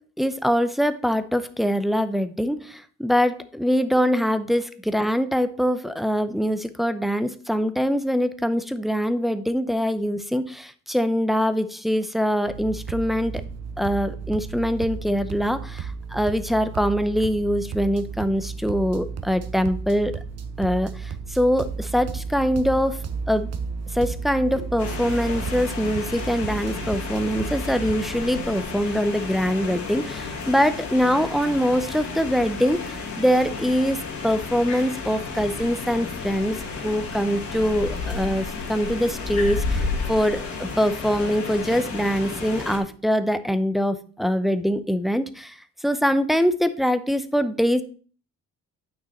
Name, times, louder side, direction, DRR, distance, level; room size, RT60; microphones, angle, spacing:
voice 1, 0.2-13.4 13.8-20.2 20.6-23.0 23.3-23.5 23.9-47.8, equal, ahead, 11 dB, 0.7 m, -23 dB
sound 1, 12.5-28.1, right 5 dB, 55° right, 1.0 m, -33 dB
sound 2, 24.8-42.8, left 4 dB, 70° left, 2.7 m, -32 dB
8.9 x 6.1 x 4.2 m, 0.42 s
cardioid pair, 90°, 30 cm